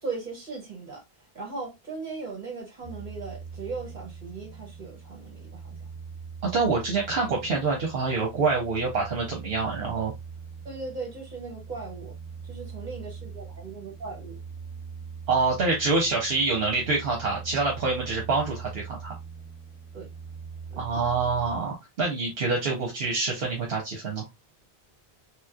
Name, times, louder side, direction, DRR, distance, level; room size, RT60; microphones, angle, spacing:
voice 1, 0.0-5.9 10.6-12.2 12.4-14.4 19.9-20.1 20.7-20.8, right 4 dB, 45° right, 1.7 m, -38 dB
sound 1, 2.8-21.6, right 6 dB, 5° left, 1.2 m, -42 dB
voice 2, 6.5-10.1 15.3-19.1 20.8-24.3, right 4 dB, 75° right, 1.1 m, -26 dB
3.3 x 3.0 x 2.3 m
omnidirectional pair, 1.0 m